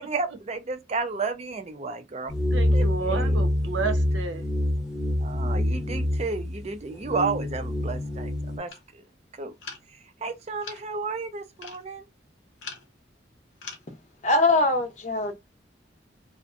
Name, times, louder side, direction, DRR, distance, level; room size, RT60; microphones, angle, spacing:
voice 1, 0.0-2.3 2.7-3.4 5.2-9.0 9.3-9.5 9.9-12.1, right 4 dB, 35° right, 0.4 m, -32 dB
sound 1, 2.3-8.6, left 1 dB, ahead, 0.8 m, -26 dB
voice 2, 2.5-4.5, right 4 dB, 85° right, 0.7 m, -31 dB
sound 2, 8.7-8.9 9.6-10.0 10.6-11.0 11.6-11.8 12.6-12.9 13.6-13.9, left 5 dB, 85° left, 0.9 m, -41 dB
voice 3, 14.2-15.4, left 2 dB, 40° left, 0.6 m, -22 dB
2.5 x 2.1 x 2.4 m
head